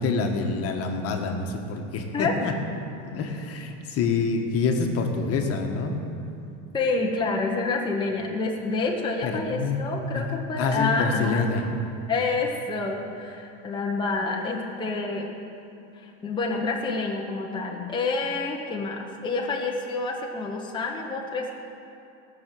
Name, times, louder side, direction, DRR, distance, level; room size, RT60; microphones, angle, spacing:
voice 1, 0.0-2.5 3.0-6.0 9.2-9.8 10.1-11.6, left 4 dB, 40° left, 3 dB, 1.5 m, -27 dB
voice 2, 6.7-11.5 12.1-15.3 16.0-21.5, left 3 dB, 15° left, -1 dB, 1.1 m, -28 dB
18.5 x 6.2 x 7.6 m, 2.6 s
supercardioid pair, 135°, 36 cm